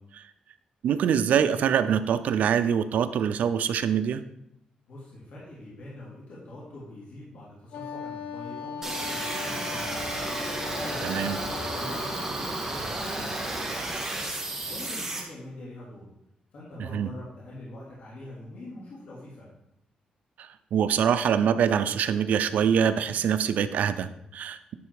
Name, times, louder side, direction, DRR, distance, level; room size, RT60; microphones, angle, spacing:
voice 1, 0.8-4.2 11.0-11.4 16.9-17.1 20.4-24.7, right 8 dB, 75° right, 11 dB, 0.5 m, -24 dB
voice 2, 4.9-10.1 10.6-14.3 14.6-16.1 16.5-19.5, left 1 dB, 65° left, -6 dB, 2.9 m, -44 dB
Wind instrument woodwind instrument, 7.7-12.4, left 6 dB, 80° left, 0.8 m, -38 dB
sound 1, 8.8-15.2, right 2 dB, 15° right, 1.9 m, -32 dB
10.0 x 4.3 x 4.8 m, 0.81 s
cardioid pair, 115°, 3 cm